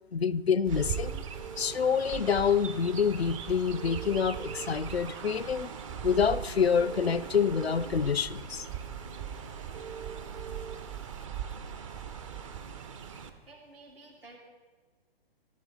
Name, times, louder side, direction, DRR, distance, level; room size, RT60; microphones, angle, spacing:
voice 1, 0.1-1.2 1.6-5.7 6.0-8.7, left 6 dB, 85° left, 0.5 m, -27 dB
sound 1, 0.6-11.3, right 6 dB, 55° right, 1.7 m, -48 dB
Chirp tweet, 0.7-13.3, right 8 dB, 35° right, 0.7 m, -40 dB
voice 2, 13.5-14.4, right 2 dB, 70° right, 2.7 m, -52 dB
14.5 x 11.0 x 3.9 m
figure-of-eight pair, 125°, 30 cm